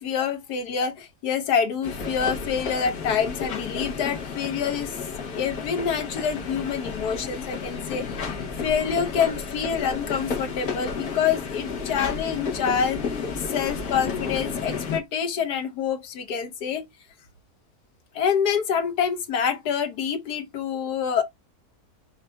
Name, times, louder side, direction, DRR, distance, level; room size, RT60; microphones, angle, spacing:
voice 1, 0.0-4.9 5.3-8.1 8.6-13.0 13.5-16.9 18.1-21.2, left 7 dB, 85° left, 1.5 m, -26 dB
sound 1, 1.8-15.0, left 5 dB, 70° left, 1.7 m, -32 dB
5.7 x 2.6 x 3.4 m
omnidirectional pair, 1.6 m